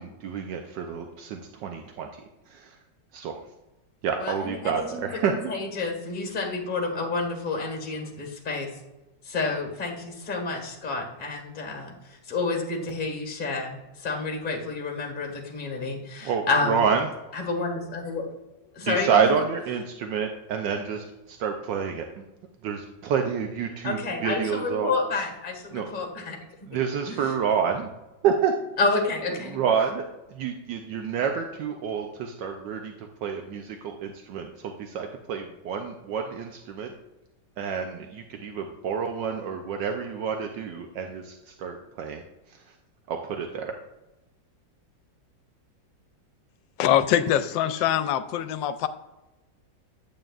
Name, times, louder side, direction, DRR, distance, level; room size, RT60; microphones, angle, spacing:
voice 1, 0.0-2.8 3.1-3.4 4.0-5.4 16.2-17.1 18.8-22.2 22.6-24.9 25.7-25.9 26.7-27.9 28.2-28.5 29.5-30.0 30.3-36.9 37.6-42.2 43.1-43.7, right 6 dB, 75° right, 4 dB, 1.3 m, -28 dB
voice 2, 4.2-8.7 9.2-16.8 17.3-18.2 18.7-19.1 23.8-26.4 26.7-26.8 27.1-27.4 28.8-29.6, left 3 dB, 30° left, 2 dB, 1.7 m, -29 dB
voice 3, 46.8-48.9, left 10 dB, 85° left, 12 dB, 1.3 m, -23 dB
9.0 x 7.7 x 2.4 m, 1.0 s
omnidirectional pair, 2.0 m